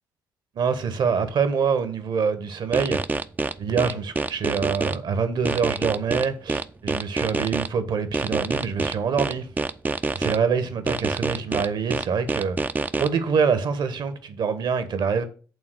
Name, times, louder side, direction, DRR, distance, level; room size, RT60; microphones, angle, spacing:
voice 1, 0.5-3.0 3.6-9.5 10.1-12.6 13.0-15.2, right 6 dB, 50° right, 1.2 m, -25 dB
sound 1, 2.7-4.9 5.4-7.7 8.1-10.4 10.9-13.1, right 3 dB, 20° right, 0.5 m, -26 dB
8.6 x 3.7 x 6.6 m
figure-of-eight pair, 45°, 10 cm